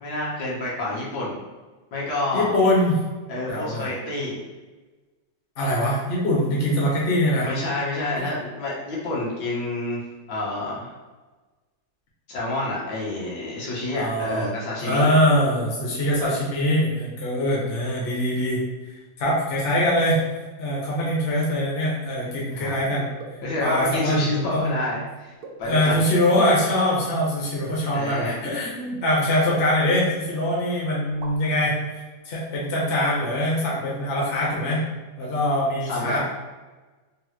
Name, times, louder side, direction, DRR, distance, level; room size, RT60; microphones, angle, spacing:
voice 1, 0.0-1.4 1.9-2.5 3.3-4.4 7.4-10.0 10.3-10.9 12.3-15.1 22.5-22.8 23.4-25.3 25.6-26.0 27.9-28.4 35.8-36.2, left 2 dB, 70° left, -5 dB, 1.5 m, -28 dB
voice 2, 2.3-3.0 3.5-3.9 5.6-7.5 8.2-8.3 13.9-14.4 14.8-18.6 19.2-20.2 20.6-23.1 23.6-24.3 24.5-24.7 25.6-34.9 35.2-36.2, left 1 dB, 45° left, -5 dB, 0.7 m, -23 dB
sound 1, 23.2-23.5 24.3-24.6 25.4-26.0 26.4-26.5 26.9-27.1 28.1-28.4 29.1-29.3 29.9-30.4 30.7-30.8 31.1-31.6, right 3 dB, 70° right, 0.9 m, -43 dB
3.7 x 2.0 x 2.9 m, 1.2 s
omnidirectional pair, 2.0 m